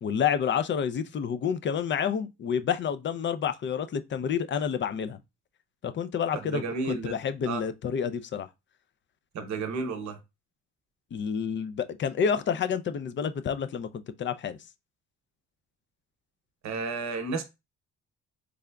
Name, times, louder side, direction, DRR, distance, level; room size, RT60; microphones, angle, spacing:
voice 1, 0.0-5.2 5.8-8.5 11.1-14.6, left 7 dB, 40° left, 0.4 m, -29 dB
voice 2, 6.3-7.2 7.5-7.6 9.3-10.2 16.6-17.4, right 4 dB, 65° right, 0.8 m, -32 dB
3.7 x 3.4 x 2.2 m
cardioid pair, 90°, 30 cm